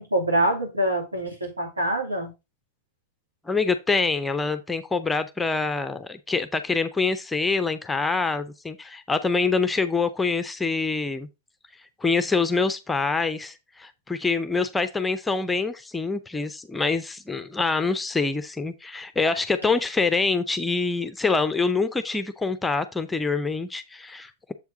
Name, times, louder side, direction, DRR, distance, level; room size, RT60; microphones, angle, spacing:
voice 1, 0.0-2.3, right 1 dB, 80° right, 2.5 m, -25 dB
voice 2, 3.5-11.3 12.0-24.5, left 4 dB, 10° left, 0.6 m, -25 dB
7.4 x 4.6 x 3.8 m
figure-of-eight pair, 90°, 0 cm